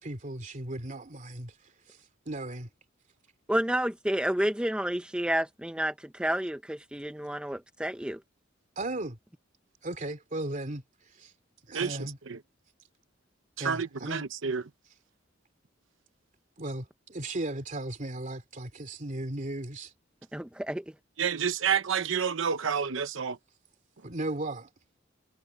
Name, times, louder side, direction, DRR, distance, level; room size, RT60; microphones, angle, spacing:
voice 1, 0.0-1.5 2.3-2.7 8.8-9.2 9.8-10.8 11.2-11.3 11.7-12.2 13.6-14.3 16.6-19.9 24.0-24.7, right 1 dB, 40° right, 2.7 m, -36 dB
voice 2, 3.5-8.2 20.3-20.9, right 1 dB, 5° right, 0.6 m, -30 dB
voice 3, 13.6-14.6 21.2-23.4, right 7 dB, 85° right, 0.8 m, -29 dB
head